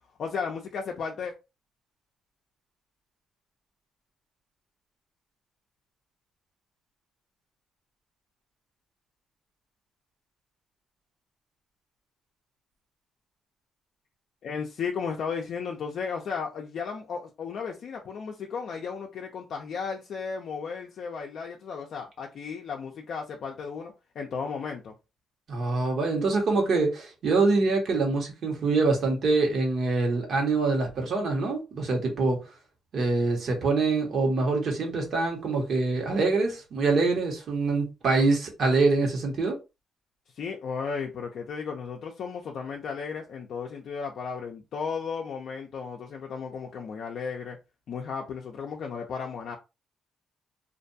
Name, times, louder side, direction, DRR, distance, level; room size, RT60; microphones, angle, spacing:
voice 1, 0.2-1.3 14.4-24.9 40.4-47.6 47.9-49.6, left 5 dB, 65° left, 0.4 m, -34 dB
voice 2, 25.5-32.4 32.9-39.5, right 3 dB, 60° right, 1.1 m, -25 dB
2.5 x 2.2 x 2.6 m
cardioid pair, 90°, 0 cm